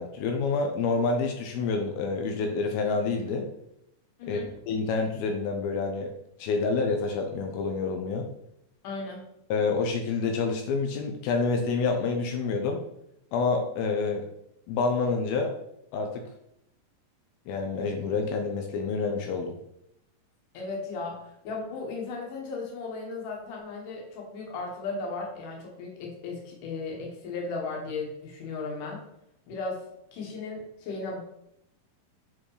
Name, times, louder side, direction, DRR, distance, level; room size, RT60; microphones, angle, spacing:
voice 1, 0.0-3.4 4.3-4.4 4.7-6.1 6.4-8.3 9.5-12.8 13.3-14.3 14.7-15.5 15.9-16.2 17.5-19.6, left 4 dB, 80° left, 3 dB, 2.7 m, -28 dB
voice 2, 4.2-4.5 8.8-9.3 20.5-29.1 29.5-29.8 30.1-31.2, left 3 dB, 65° left, -1 dB, 2.9 m, -36 dB
7.5 x 3.9 x 4.9 m, 0.79 s
omnidirectional pair, 4.4 m